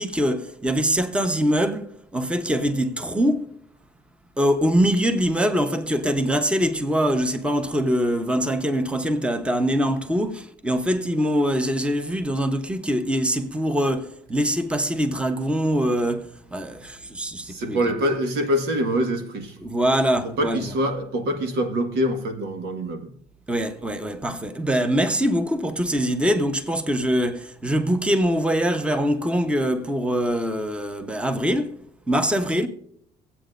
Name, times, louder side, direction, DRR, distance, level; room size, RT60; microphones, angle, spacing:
voice 1, 0.0-3.5 4.4-17.8 19.6-20.7 23.5-32.7, equal, 5° right, 1.0 m, -23 dB
voice 2, 17.4-19.6 20.2-23.1, equal, 75° right, 1.6 m, -25 dB
24.0 x 8.3 x 2.6 m
cardioid pair, 110°, 17 cm